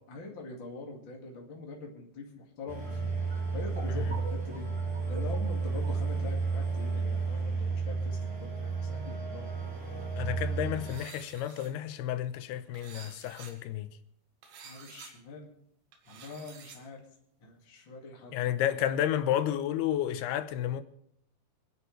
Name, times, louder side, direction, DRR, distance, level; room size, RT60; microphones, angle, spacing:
voice 1, 0.1-3.0 3.5-4.6 5.1-9.5 14.6-15.5 16.1-17.0 17.4-18.5, left 3 dB, 35° left, 2.2 m, -44 dB
sound 1, 2.7-11.0, right 4 dB, 25° right, 3.5 m, -32 dB
voice 2, 10.2-13.9 18.3-20.8, left 11 dB, 80° left, 2.7 m, -31 dB
sound 2, 10.7-11.7 12.7-13.5 14.4-15.1 15.9-16.8, right 6 dB, 80° right, 4.0 m, -50 dB
27.5 x 10.5 x 3.3 m
omnidirectional pair, 4.8 m